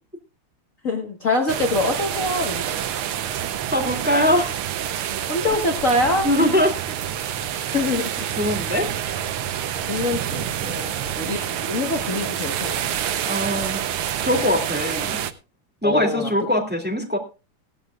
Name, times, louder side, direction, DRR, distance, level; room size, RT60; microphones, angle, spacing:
voice 1, 0.8-2.8 5.3-6.3 7.6-8.1 9.9-10.5 11.2-12.9 15.8-16.3, left 2 dB, 40° left, 2 dB, 1.7 m, -24 dB
sound 1, 1.5-15.3, right 10 dB, 80° right, 1.7 m, -27 dB
voice 2, 3.7-4.5 6.2-6.7 8.3-8.9 10.6-10.9 13.2-13.8 14.2-15.2 15.8-17.2, left 1 dB, 5° right, 2 dB, 2.3 m, -22 dB
17.0 x 13.0 x 2.4 m, 0.29 s
omnidirectional pair, 2.4 m